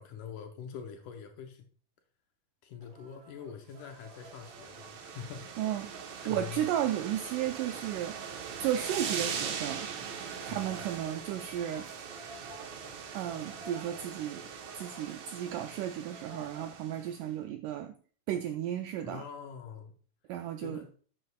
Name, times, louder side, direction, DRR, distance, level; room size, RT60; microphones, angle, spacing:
voice 1, 0.0-1.7 2.6-5.9 6.2-6.7 10.5-10.8 19.0-19.9 20.6-20.9, left 7 dB, 75° left, 2.0 m, -45 dB
sound 1, 2.8-16.7, right 1 dB, 50° right, 4.2 m, -55 dB
sound 2, 3.9-17.1, right 6 dB, 65° right, 1.9 m, -41 dB
voice 2, 5.6-8.2 8.6-9.9 10.5-11.9 13.1-14.4 14.8-17.9 18.3-19.2 20.3-20.8, right 11 dB, 85° right, 1.8 m, -34 dB
11.0 x 8.3 x 2.2 m
omnidirectional pair, 4.2 m